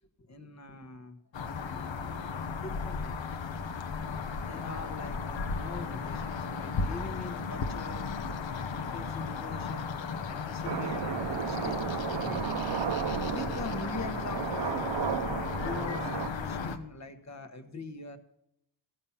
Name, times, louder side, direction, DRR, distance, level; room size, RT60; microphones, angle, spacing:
voice 1, 0.2-1.2 1.7-1.8 2.6-3.1 4.4-8.1 8.5-9.9 10.3-12.6 13.0-15.0 15.6-18.2, left 3 dB, 40° left, 8 dB, 1.1 m, -43 dB
sound 1, 1.3-16.8, left 5 dB, 85° left, 1.1 m, -35 dB
sound 2, 10.6-16.3, right 8 dB, 65° right, 0.8 m, -34 dB
15.0 x 7.3 x 5.7 m, 0.79 s
wide cardioid pair, 170°, 44 cm